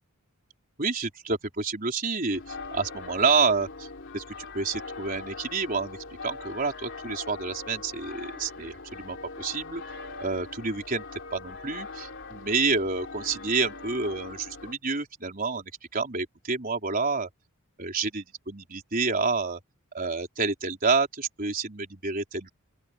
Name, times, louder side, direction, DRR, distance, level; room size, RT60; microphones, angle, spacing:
voice 1, 0.8-3.9 4.1-9.8 10.2-11.0 11.3-17.3 17.8-19.6 19.9-22.5, right 4 dB, 40° right, 4.2 m, -29 dB
sound 1, 2.3-14.7, left 4 dB, 55° left, 3.3 m, -41 dB
open air
head